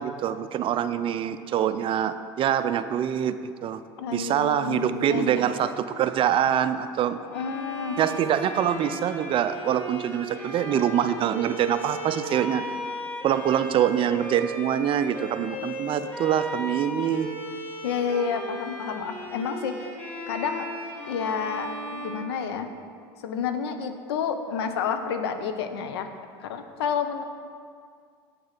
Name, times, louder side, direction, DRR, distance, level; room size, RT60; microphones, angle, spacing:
voice 1, 0.0-3.4 3.6-3.8 4.1-7.2 8.0-12.6 13.2-17.3, right 9 dB, 40° right, 12 dB, 0.5 m, -25 dB
voice 2, 4.0-5.4 7.2-8.0 17.8-19.9 20.3-20.7 21.1-22.7 23.2-26.1 26.4-27.2, left 6 dB, 80° left, 8 dB, 0.8 m, -30 dB
Bowed string instrument, 7.3-23.0, equal, 15° left, 1.8 m, -36 dB
7.6 x 6.6 x 5.8 m, 2.1 s
hypercardioid pair, 90°, 13 cm